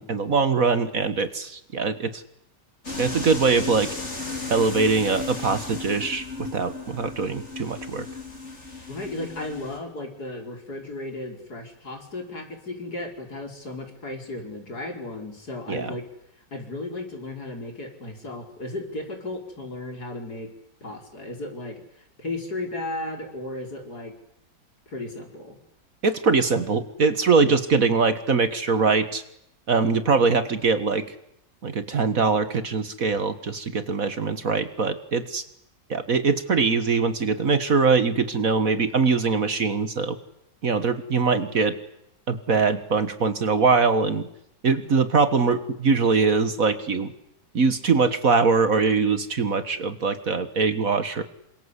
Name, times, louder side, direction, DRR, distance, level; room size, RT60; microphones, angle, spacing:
voice 1, 0.0-2.2 3.0-3.9 4.5-8.1 15.7-15.9 26.0-29.2 29.7-31.2 31.6-35.4 35.9-40.2 40.6-41.8 42.3-44.3 44.6-47.1 47.5-51.2, right 4 dB, 50° right, 11 dB, 1.9 m, -22 dB
sound 1, 2.8-9.8, left 3 dB, 40° left, 4.9 m, -35 dB
voice 2, 8.9-16.1 16.5-20.5 20.8-24.1 24.9-25.6, left 2 dB, 60° left, 3 dB, 5.3 m, -35 dB
28.0 x 25.5 x 8.3 m, 0.78 s
omnidirectional pair, 1.9 m